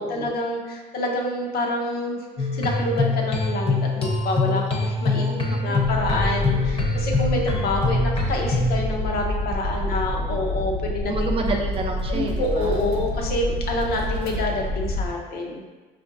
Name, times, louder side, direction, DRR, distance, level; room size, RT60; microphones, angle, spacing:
voice 1, 0.0-5.3 5.6-11.3 12.1-15.7, left 2 dB, 65° left, 0 dB, 0.6 m, -27 dB
sound 1, 2.4-8.8, left 3 dB, 35° left, 0.7 m, -24 dB
voice 2, 5.1-5.8 9.7-10.5 11.0-12.8, right 3 dB, 35° right, 2 dB, 0.5 m, -30 dB
sound 2, 5.8-15.1, left 1 dB, 75° right, 0.7 m, -28 dB
4.8 x 2.5 x 2.5 m, 1.3 s
cardioid pair, 110°, 17 cm